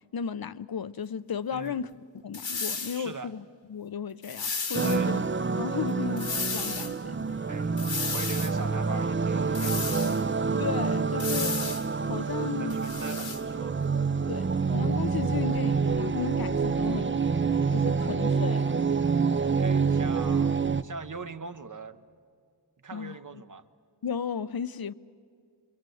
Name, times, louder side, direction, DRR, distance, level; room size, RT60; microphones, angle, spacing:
voice 1, 0.1-1.9 2.2-3.4 3.7-5.2 5.6-7.2 10.6-11.6 12.1-12.8 14.3-17.2 17.7-18.8 22.9-23.4 24.0-24.9, left 7 dB, 55° left, 0.7 m, -34 dB
voice 2, 1.5-1.8 2.9-3.3 4.8-5.1 7.5-7.7 8.1-10.0 12.6-13.8 19.6-22.0 22.8-23.6, right 4 dB, 45° right, 1.1 m, -41 dB
sound 1, 2.3-3.0 4.2-5.0 6.2-6.9 7.8-8.5 9.5-10.2 11.2-11.9 12.7-13.4, left 5 dB, 85° left, 2.2 m, -33 dB
sound 2, 4.7-20.8, right 5 dB, 25° right, 0.6 m, -27 dB
26.0 x 24.0 x 7.8 m
wide cardioid pair, 80°, 44 cm